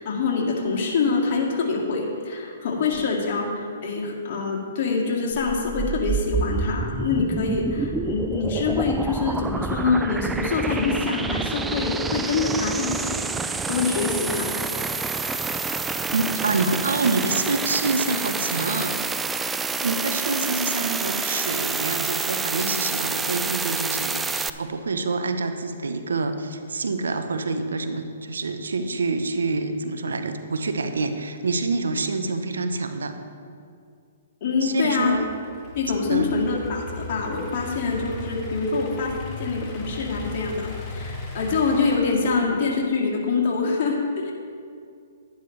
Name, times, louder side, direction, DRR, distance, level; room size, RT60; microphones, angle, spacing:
voice 1, 0.0-14.6 34.4-35.1 35.8-44.3, left 4 dB, 50° left, -2 dB, 2.2 m, -25 dB
sound 1, 5.3-24.5, right 4 dB, 10° right, 0.3 m, -28 dB
voice 2, 16.1-19.0 19.8-33.2 34.6-35.3 36.1-36.3, right 3 dB, 85° right, 8 dB, 0.8 m, -27 dB
Idling / Accelerating revving vroom, 34.9-42.0, left 2 dB, 25° left, 1.6 m, -37 dB
11.0 x 11.0 x 3.2 m, 2.3 s
hypercardioid pair, 135°, 0 cm